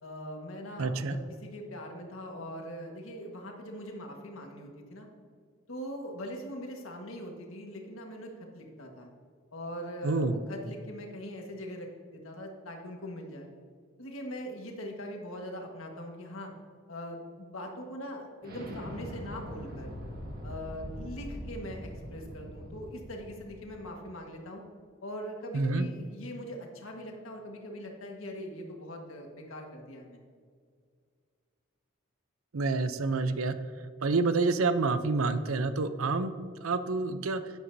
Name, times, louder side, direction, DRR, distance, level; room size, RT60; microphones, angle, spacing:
voice 1, 0.0-5.1 5.7-9.1 9.5-13.5 14.0-16.5 16.9-19.9 20.4-24.6 25.0-30.3, equal, 80° left, 1 dB, 1.6 m, -41 dB
voice 2, 0.8-1.2 10.0-10.4 25.5-25.9 32.5-33.6 34.0-36.3 36.6-37.4, right 3 dB, 85° right, 11 dB, 0.6 m, -28 dB
Explosion, 18.4-23.9, equal, 45° right, 1.8 m, -42 dB
11.5 x 9.3 x 2.7 m, 2.1 s
head